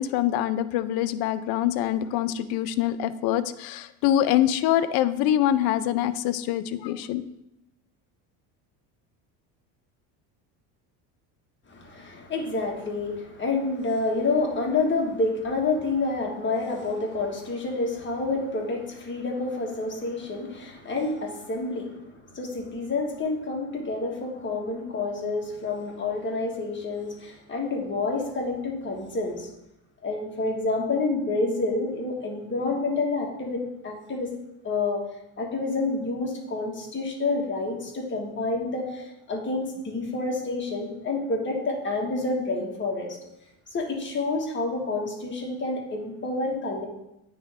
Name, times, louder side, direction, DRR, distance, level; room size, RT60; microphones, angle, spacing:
voice 1, 0.0-7.2, left 12 dB, 60° left, 14 dB, 0.5 m, -24 dB
voice 2, 11.7-29.5 30.0-34.3 34.6-35.0 35.4-43.2 43.7-46.9, left 3 dB, 25° left, 0 dB, 1.6 m, -28 dB
9.5 x 3.5 x 3.5 m, 0.86 s
supercardioid pair, 95°, 42 cm